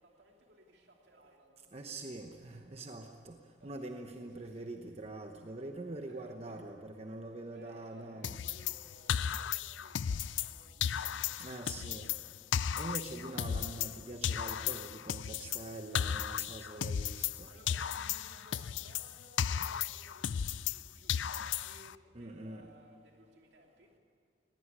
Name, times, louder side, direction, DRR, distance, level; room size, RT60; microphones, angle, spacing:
voice 1, 0.0-1.7 3.6-4.1 4.4-4.7 6.1-6.6 7.4-9.2 9.4-12.5 13.1-14.3 17.4-24.0, right 1 dB, 65° right, 1 dB, 2.9 m, -61 dB
voice 2, 1.7-3.4 3.6-8.4 11.4-12.1 12.8-17.5 22.1-22.7, right 2 dB, 35° right, 4 dB, 0.9 m, -44 dB
sound 1, 8.2-10.5 10.8-14.0 14.2-17.4 17.7-20.8 21.1-21.9, left 8 dB, 90° left, 0.5 m, -35 dB
19.5 x 17.5 x 9.8 m, 2.3 s
head